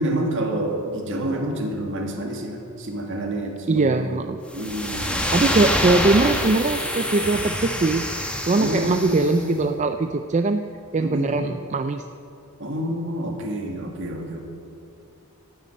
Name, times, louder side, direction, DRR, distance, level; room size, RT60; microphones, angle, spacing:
voice 1, 0.0-4.1 4.5-5.2 8.6-9.6 11.0-11.5 12.6-14.4, right 1 dB, 55° right, 2 dB, 2.1 m, -28 dB
voice 2, 3.7-4.4 5.3-8.1 8.4-10.6 10.9-12.1, right 3 dB, 30° right, 7 dB, 0.4 m, -21 dB
sound 1, 4.5-9.4, equal, 5° left, 1.3 m, -26 dB
sound 2, 7.2-10.7, left 1 dB, 30° left, 0.7 m, -40 dB
12.5 x 10.5 x 8.5 m, 2.5 s
head